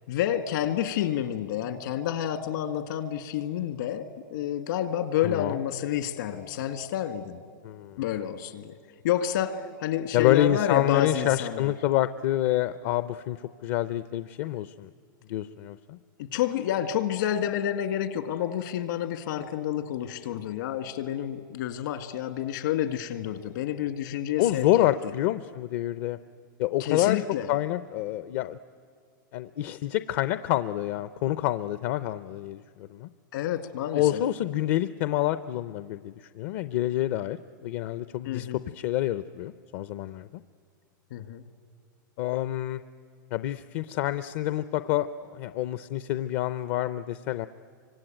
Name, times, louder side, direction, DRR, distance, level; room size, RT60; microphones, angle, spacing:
voice 1, 0.1-7.4 8.0-8.7 9.0-11.7 16.2-24.7 26.8-27.5 33.3-34.2 38.3-38.6 41.1-41.4, left 10 dB, 70° left, 10 dB, 1.9 m, -29 dB
voice 2, 5.2-5.6 7.6-8.0 10.1-14.9 15.3-16.0 24.4-26.2 26.6-28.6 29.3-33.1 33.9-38.5 38.7-40.3 42.2-42.8 43.3-47.5, left 14 dB, 50° left, 13 dB, 0.6 m, -27 dB
26.0 x 25.0 x 9.0 m, 2.1 s
supercardioid pair, 140°, 11 cm